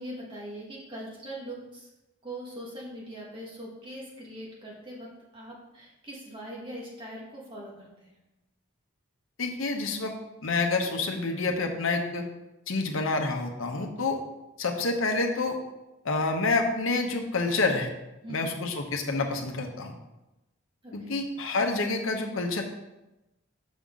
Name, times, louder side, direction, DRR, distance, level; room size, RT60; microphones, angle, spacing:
voice 1, 0.0-1.9 2.2-8.2 18.2-18.6 20.8-21.2, right 1 dB, 25° right, -4 dB, 1.5 m, -41 dB
voice 2, 9.4-10.1 10.4-12.3 12.7-14.2 14.6-15.6 16.0-17.9 18.3-19.9 20.9-22.6, left 3 dB, 80° left, 3 dB, 0.9 m, -28 dB
6.2 x 5.5 x 3.6 m, 0.98 s
head